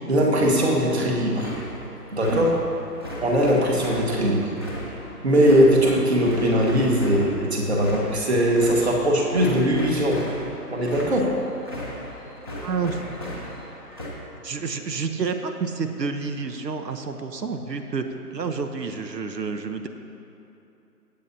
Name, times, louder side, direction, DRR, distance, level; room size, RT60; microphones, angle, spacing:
voice 1, 0.1-1.5 2.1-2.6 3.2-4.5 5.2-10.2 10.7-11.4, equal, 40° right, -1 dB, 1.8 m, -20 dB
sound 1, 0.9-14.1, equal, 15° right, 0.9 m, -37 dB
voice 2, 12.5-13.0 14.4-18.0 18.3-19.9, right 5 dB, 80° right, 7 dB, 1.1 m, -29 dB
24.0 x 8.6 x 2.8 m, 2.8 s
hypercardioid pair, 170°, 49 cm